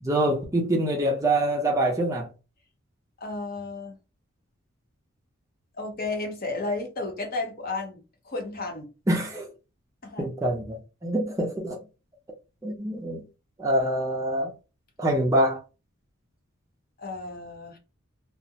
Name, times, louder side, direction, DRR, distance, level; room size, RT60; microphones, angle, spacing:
voice 1, 0.0-2.3 9.1-9.5 10.2-11.8 12.6-13.2 13.6-14.5 15.0-15.6, right 1 dB, 15° right, 0.5 m, -25 dB
voice 2, 3.2-4.0 5.8-8.9 10.0-10.2 17.0-17.8, left 3 dB, 45° left, 0.7 m, -33 dB
2.3 x 2.0 x 2.7 m
head